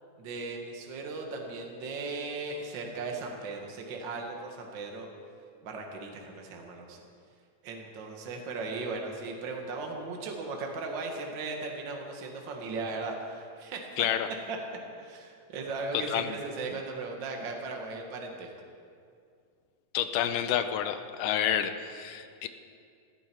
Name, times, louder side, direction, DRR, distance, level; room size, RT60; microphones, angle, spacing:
voice 1, 0.2-5.1 5.6-7.0 7.6-14.1 14.5-14.6 15.0-18.5, right 3 dB, 40° right, 1 dB, 1.9 m, -37 dB
voice 2, 14.0-14.3 15.9-16.4 19.9-22.5, left 10 dB, 85° left, 9 dB, 2.2 m, -29 dB
17.5 x 14.5 x 4.6 m, 2.3 s
omnidirectional pair, 3.7 m